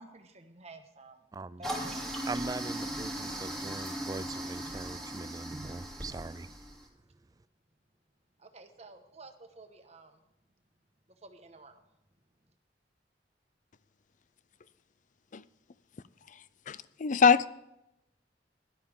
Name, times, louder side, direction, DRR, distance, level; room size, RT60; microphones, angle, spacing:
voice 1, 0.0-1.2 1.6-2.1 8.4-10.2 11.2-11.8, right 3 dB, 40° right, 1.4 m, -52 dB
voice 2, 1.3-1.6 2.3-6.5, right 3 dB, 20° right, 0.4 m, -41 dB
Toilet flush, 1.6-6.8, right 1 dB, 5° left, 2.9 m, -38 dB
voice 3, 16.7-17.5, left 6 dB, 45° left, 0.5 m, -23 dB
17.0 x 11.5 x 3.7 m
head